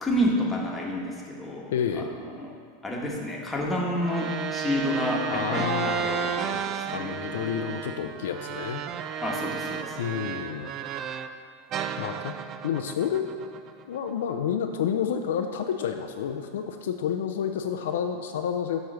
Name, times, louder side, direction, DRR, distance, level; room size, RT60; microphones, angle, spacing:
voice 1, 0.0-2.5 2.8-7.2 9.2-10.1, equal, 15° left, -2 dB, 1.2 m, -29 dB
voice 2, 1.7-2.1 5.3-8.8 10.0-10.7 12.0-12.3 12.6-13.3 13.9-18.8, left 8 dB, 75° left, 5 dB, 0.4 m, -30 dB
sound 1, 4.0-11.4 11.7-14.1, right 8 dB, 40° right, 0.3 m, -33 dB
7.1 x 3.1 x 6.1 m, 2.1 s
hypercardioid pair, 105°, 0 cm